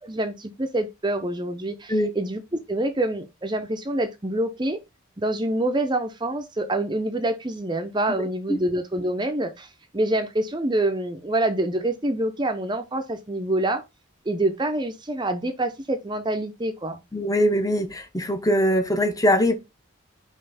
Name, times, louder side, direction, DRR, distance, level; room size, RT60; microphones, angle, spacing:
voice 1, 0.0-4.8 5.2-13.8 14.3-17.0, right 1 dB, 20° right, 0.6 m, -26 dB
voice 2, 17.1-19.5, equal, 15° left, 0.8 m, -22 dB
5.5 x 3.1 x 5.6 m
head